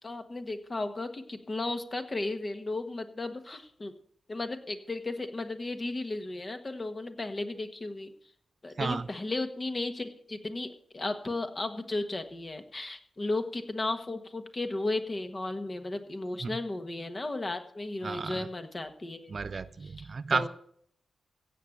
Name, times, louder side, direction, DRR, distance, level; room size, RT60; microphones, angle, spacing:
voice 1, 0.0-3.9 4.3-8.1 8.6-19.3 20.0-20.5, left 2 dB, 30° left, 7 dB, 1.4 m, -35 dB
voice 2, 8.8-9.1 16.4-16.6 18.0-18.5 19.3-20.5, right 4 dB, 50° right, 14 dB, 0.5 m, -32 dB
16.0 x 7.3 x 6.6 m, 0.63 s
wide cardioid pair, 105°, 0 cm